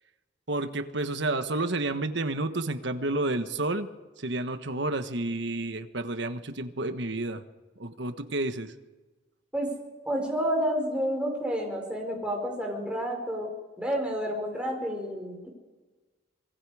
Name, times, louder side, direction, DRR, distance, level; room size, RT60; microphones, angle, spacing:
voice 1, 0.5-3.9 4.2-7.4 7.8-8.7, right 2 dB, 65° right, 9 dB, 1.4 m, -30 dB
voice 2, 10.1-13.5 13.8-15.5, equal, 5° right, 0 dB, 4.7 m, -30 dB
27.0 x 22.0 x 5.0 m, 1.2 s
head